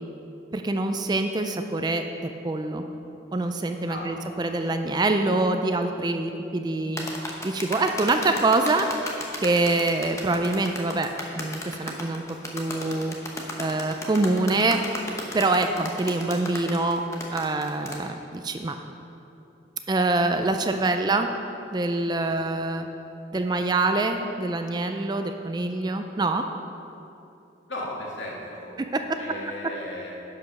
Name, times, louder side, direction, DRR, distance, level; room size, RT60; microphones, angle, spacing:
voice 1, 0.5-2.8 3.3-7.1 7.4-8.9 9.4-11.1 11.4-12.2 12.5-13.2 13.6-14.8 15.3-17.0 17.3-18.8 19.9-21.3 21.7-22.9 23.3-26.4 28.8-29.0, right 2 dB, 20° right, 6 dB, 0.3 m, -25 dB
voice 2, 3.9-4.6 22.2-22.6 27.7-28.7 29.1-30.1, left 1 dB, 70° left, -4 dB, 2.0 m, -37 dB
sound 1, 7.0-18.0, left 1 dB, 15° left, 0.8 m, -35 dB
10.5 x 5.1 x 6.0 m, 2.8 s
head